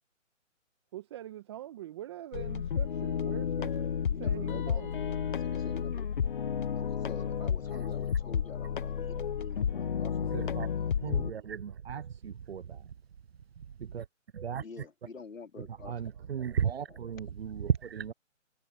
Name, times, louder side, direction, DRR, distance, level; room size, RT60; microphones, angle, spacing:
voice 1, 0.9-3.9 4.2-5.0 10.1-12.0 16.2-16.3, right 13 dB, 20° right, 1.2 m, -45 dB
sound 1, 2.3-11.3, left 7 dB, 40° left, 0.7 m, -32 dB
voice 2, 4.0-4.8 5.3-6.1 6.7-10.4 14.6-16.2 16.7-17.0, left 5 dB, 80° left, 3.0 m, -47 dB
voice 3, 10.3-10.7 11.0-12.6 13.8-14.0 14.3-14.6 15.6-18.1, right 8 dB, 50° right, 0.8 m, -34 dB
hypercardioid pair, 155°, 39 cm